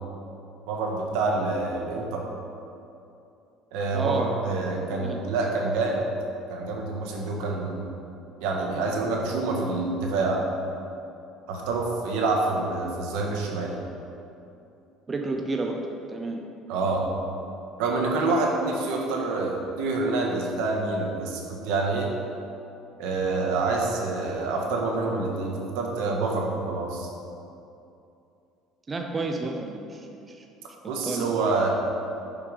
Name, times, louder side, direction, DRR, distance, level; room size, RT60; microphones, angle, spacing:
voice 1, 0.7-2.2 3.7-6.0 6.5-7.7 8.4-10.4 11.5-13.8 16.7-17.0 17.8-22.1 23.0-27.1 30.9-31.7, right 3 dB, 80° right, 0 dB, 1.6 m, -27 dB
voice 2, 3.9-4.3 5.0-5.2 15.1-16.4 28.9-30.5 31.0-31.4, right 2 dB, 15° right, 2 dB, 0.5 m, -31 dB
9.1 x 5.8 x 5.3 m, 2.7 s
cardioid pair, 170°, 0 cm